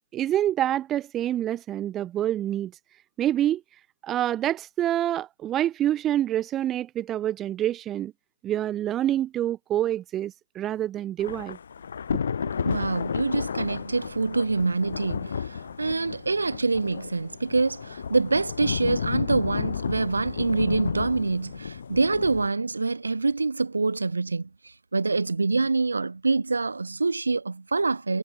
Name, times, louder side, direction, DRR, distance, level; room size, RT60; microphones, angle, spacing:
voice 1, 0.1-2.7 3.2-3.6 4.0-8.1 8.4-11.6, right 12 dB, 10° right, 1.6 m, -27 dB
Thunder / Rain, 11.2-22.5, left 7 dB, 50° left, 5.6 m, -32 dB
voice 2, 12.4-24.5 24.9-28.2, right 3 dB, 85° right, 4.6 m, -26 dB
hypercardioid pair, 160°, 0 cm